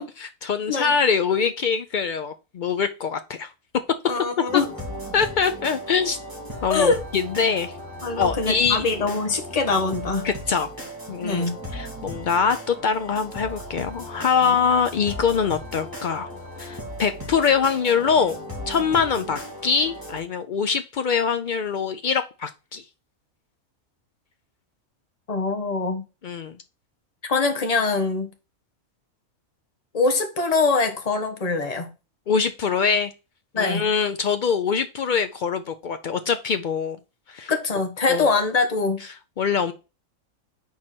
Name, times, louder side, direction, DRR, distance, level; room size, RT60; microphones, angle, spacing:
voice 1, 0.0-3.5 4.5-4.6 5.1-6.2 6.6-7.7 8.2-8.8 10.2-10.7 11.1-16.3 16.6-18.4 18.7-22.8 26.2-26.5 32.3-33.1 33.6-37.0 37.3-37.5 38.1-38.3 39.4-39.7, left 6 dB, 85° left, 0.4 m, -23 dB
voice 2, 4.1-4.7 6.7-7.0 8.0-10.3 11.2-11.6 14.5-14.6 25.3-26.0 27.2-28.3 29.9-31.9 33.5-33.9 37.5-39.0, left 4 dB, 30° left, 1.1 m, -23 dB
sound 1, 4.5-20.2, equal, 15° right, 2.1 m, -37 dB
4.8 x 4.5 x 5.8 m
omnidirectional pair, 1.5 m